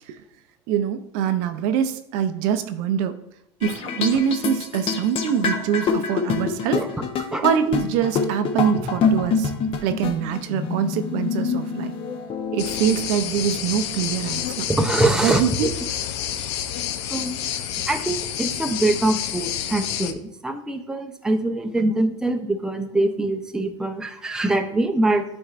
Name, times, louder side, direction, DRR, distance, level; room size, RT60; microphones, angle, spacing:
voice 1, 0.7-3.2 3.6-6.8 7.4-9.5 9.8-11.9 12.5-14.7 15.2-15.7, right 8 dB, 60° right, 9 dB, 0.6 m, -24 dB
sound 1, 3.6-13.1, left 5 dB, 35° left, 0.8 m, -26 dB
voice 2, 6.7-7.4 14.7-15.4 17.1-17.5 17.9-25.2, right 2 dB, 5° right, 5 dB, 0.6 m, -23 dB
sound 2, 12.6-20.1, left 10 dB, 70° left, 0.6 m, -29 dB
10.5 x 4.4 x 2.5 m, 0.79 s
supercardioid pair, 110°, 15 cm